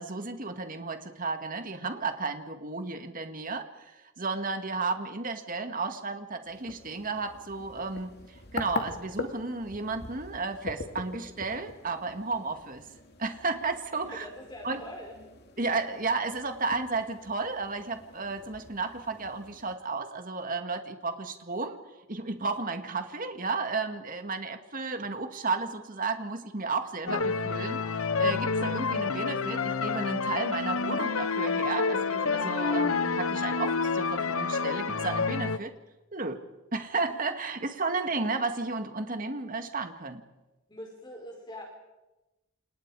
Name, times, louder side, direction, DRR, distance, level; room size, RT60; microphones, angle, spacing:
voice 1, 0.0-3.7 3.9-12.8 13.2-14.3 14.6-14.8 15.6-21.8 22.1-35.7 36.1-36.4 36.7-40.2, right 3 dB, 40° right, 7 dB, 2.1 m, -33 dB
sound 1, 6.4-19.8, left 3 dB, 50° left, 2.6 m, -43 dB
voice 2, 14.0-15.2 40.7-41.7, left 1 dB, 20° left, 2 dB, 4.5 m, -43 dB
sound 2, 27.1-35.6, left 4 dB, 80° left, 1.0 m, -28 dB
29.0 x 28.5 x 5.0 m, 1.0 s
head